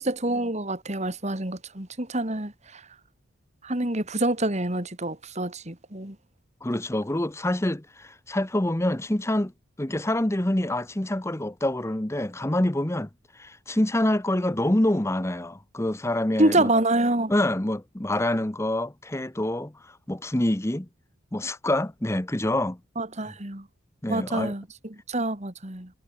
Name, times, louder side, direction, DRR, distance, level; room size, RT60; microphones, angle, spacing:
voice 1, 0.0-2.8 3.6-6.2 16.4-17.3 23.0-23.6 24.1-24.6 25.1-25.9, right 1 dB, 30° right, 2.6 m, -26 dB
voice 2, 6.6-9.5 9.8-13.1 13.4-16.7 17.3-20.9 21.3-22.8 24.0-24.5, left 1 dB, 15° left, 0.8 m, -26 dB
head